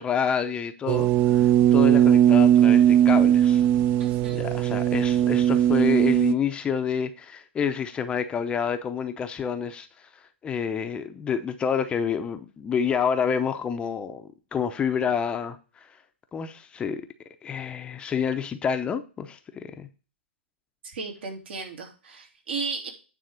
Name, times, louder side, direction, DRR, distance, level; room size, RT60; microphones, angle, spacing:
voice 1, 0.0-3.6 4.3-15.9 16.3-17.0 17.4-19.9, left 7 dB, 15° left, 0.6 m, -28 dB
sound 1, 0.9-6.3, right 11 dB, 35° right, 0.5 m, -19 dB
voice 2, 4.0-4.5 20.8-22.9, right 4 dB, 70° right, 2.8 m, -35 dB
9.5 x 3.6 x 6.3 m
hypercardioid pair, 130°, 6 cm